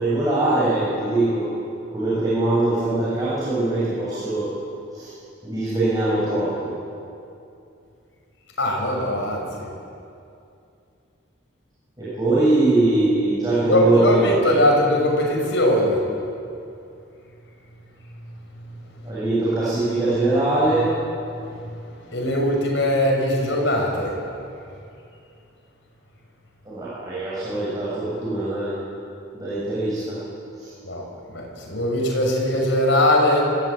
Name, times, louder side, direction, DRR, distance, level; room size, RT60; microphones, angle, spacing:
voice 1, 0.0-1.5 1.9-4.5 4.9-5.1 5.4-6.7 12.0-14.3 19.0-20.9 26.7-28.7 29.3-30.2, right 2 dB, 20° right, -10 dB, 7.9 m, -22 dB
voice 2, 8.6-9.7 13.6-16.0 22.1-24.1 30.8-31.0 31.3-33.4, left 1 dB, 65° left, 0 dB, 6.3 m, -20 dB
26.0 x 18.0 x 9.0 m, 2.6 s
head